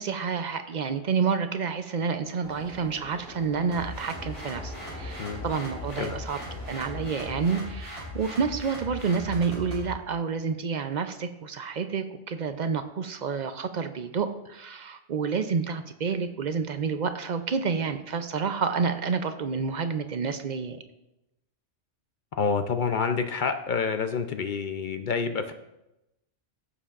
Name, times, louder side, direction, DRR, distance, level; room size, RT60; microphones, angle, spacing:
voice 1, 0.0-6.4 6.7-20.8, right 5 dB, 55° right, 9 dB, 0.5 m, -29 dB
sound 1, 2.4-7.6, equal, 5° left, 3.1 m, -44 dB
sound 2, 3.7-9.9, left 1 dB, 25° left, 3.4 m, -39 dB
voice 2, 22.4-25.5, left 5 dB, 55° left, 8 dB, 0.6 m, -28 dB
15.5 x 6.9 x 2.5 m, 0.92 s
omnidirectional pair, 1.2 m